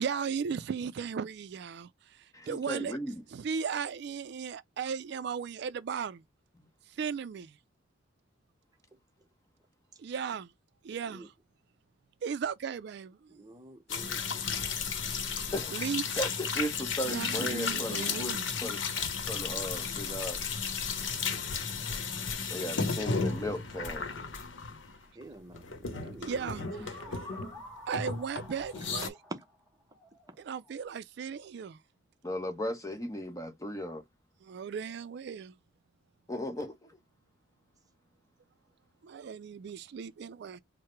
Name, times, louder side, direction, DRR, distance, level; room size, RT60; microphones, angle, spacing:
voice 1, 0.0-3.0 3.3-6.2 6.9-7.6 10.0-10.5 10.8-11.3 12.2-13.4 15.7-16.2 17.0-18.5 26.2-27.0 27.9-29.2 30.4-31.8 34.4-35.6 39.0-40.6, right 6 dB, 60° right, 0.3 m, -36 dB
voice 2, 2.3-3.2 6.6-6.7 15.5-18.3 18.6-18.9 19.3-20.4 22.5-24.0 32.2-34.0 36.3-37.0, equal, 15° left, 0.9 m, -36 dB
sound 1, 13.9-25.2 25.5-27.6 27.9-29.1, left 5 dB, 75° left, 0.9 m, -34 dB
voice 3, 17.7-18.3 22.6-22.7 23.0-23.6 25.2-26.3 27.1-27.2, right 1 dB, 20° right, 0.7 m, -48 dB
sound 2, 24.9-25.0 26.3-30.8, left 1 dB, 5° right, 2.3 m, -50 dB
4.7 x 2.1 x 4.4 m
head